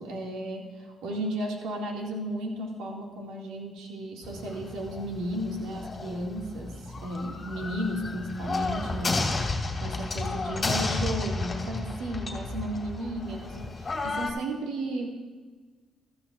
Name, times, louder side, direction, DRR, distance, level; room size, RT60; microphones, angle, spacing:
voice 1, 0.0-15.1, right 1 dB, 90° right, 0 dB, 2.1 m, -34 dB
sound 1, 4.2-14.3, left 3 dB, 30° left, 2.3 m, -32 dB
15.0 x 13.5 x 2.5 m, 1.3 s
cardioid pair, 90°, 0 cm